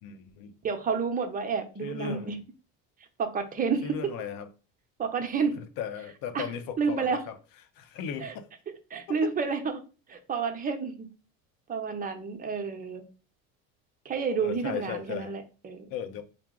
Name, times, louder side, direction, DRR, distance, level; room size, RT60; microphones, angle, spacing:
voice 1, 0.0-0.6 1.8-2.4 3.8-4.5 5.6-7.3 7.8-8.5 9.1-9.3 14.4-15.3 15.9-16.2, left 8 dB, 65° left, 0.7 m, -36 dB
voice 2, 0.6-2.4 3.2-4.0 5.0-5.5 6.3-6.5 6.8-7.2 8.2-8.3 8.9-9.8 10.1-11.1 11.7-13.0 14.0-15.9, right 5 dB, 25° right, 0.7 m, -30 dB
4.6 x 2.0 x 3.7 m
supercardioid pair, 100°, 37 cm